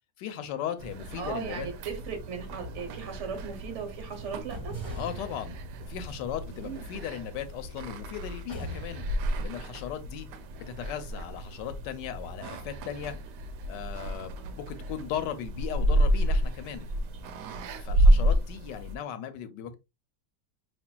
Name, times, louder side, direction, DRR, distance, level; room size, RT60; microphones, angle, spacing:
voice 1, 0.2-1.7 5.0-5.6 5.9-9.0 9.4-10.3 10.6-13.1 13.7-16.9 17.8-19.7, left 9 dB, 85° left, 1.3 m, -37 dB
sound 1, 0.8-19.0, equal, 75° right, 1.1 m, -30 dB
voice 2, 1.2-4.8 6.5-6.8 14.3-14.5 18.0-18.4, right 6 dB, 50° right, 1.1 m, -38 dB
sound 2, 2.6-3.8 4.5-7.9 8.5-9.5, right 1 dB, 15° right, 1.4 m, -43 dB
5.1 x 2.9 x 2.2 m
omnidirectional pair, 1.9 m